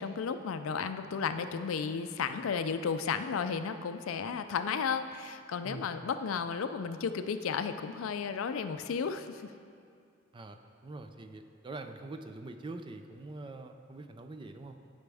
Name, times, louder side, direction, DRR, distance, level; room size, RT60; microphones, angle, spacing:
voice 1, 0.0-9.5, left 6 dB, 80° left, 10 dB, 0.4 m, -33 dB
voice 2, 10.3-14.8, right 2 dB, 25° right, 7 dB, 0.4 m, -44 dB
11.5 x 5.1 x 3.4 m, 2.4 s
head